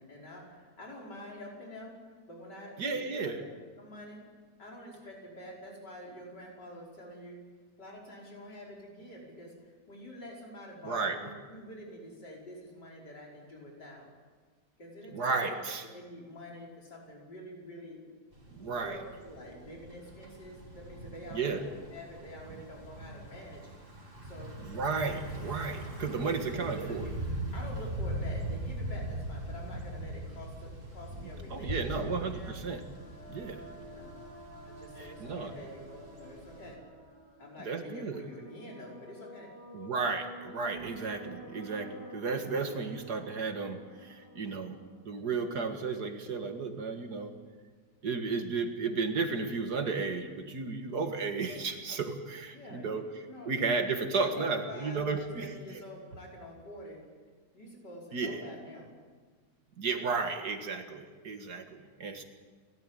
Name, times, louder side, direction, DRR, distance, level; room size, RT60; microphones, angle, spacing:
voice 1, 0.0-2.0 2.3-3.5 3.8-4.2 4.6-7.4 7.8-14.0 14.8-15.6 15.9-18.0 18.7-23.6 24.2-24.6 26.0-27.1 27.5-32.6 33.8-34.2 34.6-36.8 37.4-39.5 52.5-54.1 54.4-57.0 57.5-58.9, equal, 80° left, -2 dB, 6.0 m, -47 dB
voice 2, 2.8-3.4 10.8-11.2 15.1-15.9 18.5-19.0 21.3-21.6 24.6-27.1 31.5-32.8 33.3-33.6 35.0-35.5 37.6-38.2 39.7-44.8 45.0-47.3 48.0-53.0 53.5-55.8 58.1-58.5 59.8-62.2, right 4 dB, 65° right, 6 dB, 2.3 m, -33 dB
Thunder / Bicycle, 18.3-36.7, right 1 dB, 30° right, 3.3 m, -41 dB
sound 1, 32.2-45.8, right 1 dB, 40° left, 7.2 m, -50 dB
29.5 x 13.5 x 9.0 m, 1.5 s
omnidirectional pair, 1.8 m